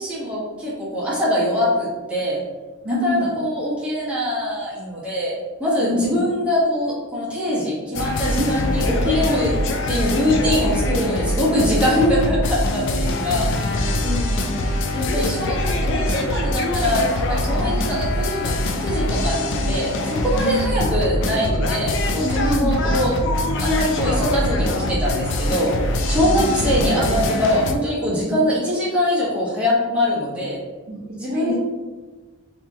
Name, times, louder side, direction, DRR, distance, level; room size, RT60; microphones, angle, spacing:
voice 1, 0.0-2.4 2.9-5.3 5.6-9.5 9.9-13.8 14.9-23.2 23.6-30.6 31.2-31.5, left 1 dB, 5° right, -9 dB, 1.0 m, -23 dB
voice 2, 2.8-3.3 5.8-6.3 8.4-8.6 11.5-11.6 13.3-14.7 17.6-17.8 20.3-20.9 22.4-22.8 26.2-26.7 28.2-28.5 30.9-31.5, equal, 45° right, -4 dB, 0.6 m, -27 dB
sound 1, 7.9-27.7, left 1 dB, 55° left, 0.3 m, -23 dB
3.0 x 2.8 x 3.5 m, 1.3 s
head